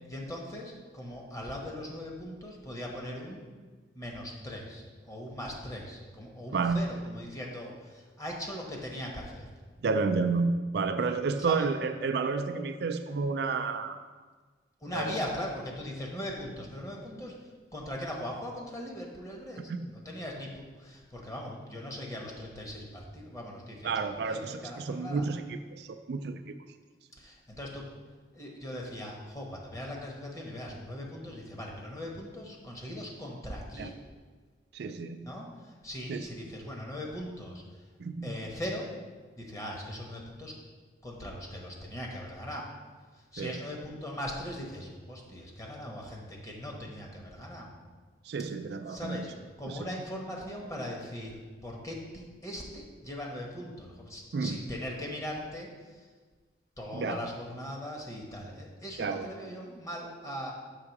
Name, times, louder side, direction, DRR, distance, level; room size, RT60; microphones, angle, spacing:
voice 1, 0.0-3.4 3.9-9.5 11.4-11.7 14.8-25.3 27.2-27.9 28.3-34.0 35.2-37.8 38.2-38.9 39.4-40.6 41.0-42.7 43.1-47.7 48.9-56.1 56.8-60.5, left 1 dB, 20° left, -1 dB, 1.1 m, -40 dB
voice 2, 9.8-14.0 14.9-15.1 19.7-19.8 23.8-26.4 33.8-33.9 34.7-35.3 36.1-36.3 38.0-38.3 43.4-43.5 48.3-49.3 49.7-49.8 54.3-54.6 56.9-57.2 59.0-59.3, right 4 dB, 65° right, 8 dB, 0.4 m, -30 dB
6.8 x 3.6 x 5.9 m, 1.4 s
head